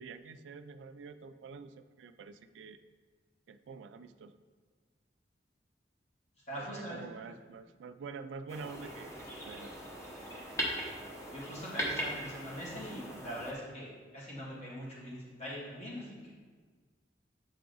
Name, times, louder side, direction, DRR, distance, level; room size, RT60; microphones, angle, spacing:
voice 1, 0.0-2.8 3.5-4.4 6.6-9.7, right 5 dB, 90° right, 11 dB, 0.3 m, -47 dB
voice 2, 6.5-7.0 7.3-7.4 11.3-16.3, equal, 40° left, -7 dB, 2.1 m, -42 dB
sound 1, 8.5-13.5, equal, 15° left, 0.9 m, -39 dB
7.4 x 4.7 x 3.9 m, 1.5 s
head